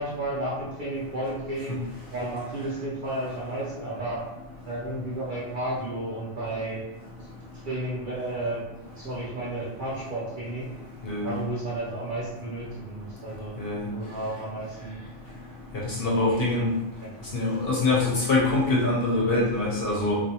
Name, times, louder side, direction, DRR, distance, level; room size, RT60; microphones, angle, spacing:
voice 1, 0.0-1.8 2.1-4.3 4.6-6.8 7.6-8.6 9.0-10.7 11.2-13.6 13.9-15.0 16.2-16.5 17.0-17.4, right 1 dB, 55° right, -7 dB, 0.6 m, -32 dB
voice 2, 16.0-16.7 17.3-20.2, left 2 dB, 60° left, -4 dB, 0.7 m, -24 dB
2.5 x 2.1 x 2.7 m, 0.97 s
omnidirectional pair, 1.3 m